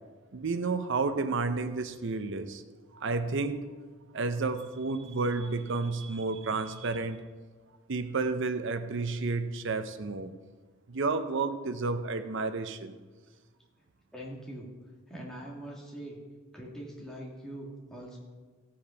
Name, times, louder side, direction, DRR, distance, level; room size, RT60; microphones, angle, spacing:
voice 1, 0.3-2.6 2.9-3.6 4.1-7.2 7.9-10.3 10.9-13.0, right 3 dB, 60° right, 9 dB, 0.7 m, -31 dB
voice 2, 14.1-14.7 15.1-16.2 16.5-18.2, right 1 dB, 5° left, -4 dB, 2.1 m, -42 dB
16.5 x 5.8 x 5.1 m, 1.4 s
head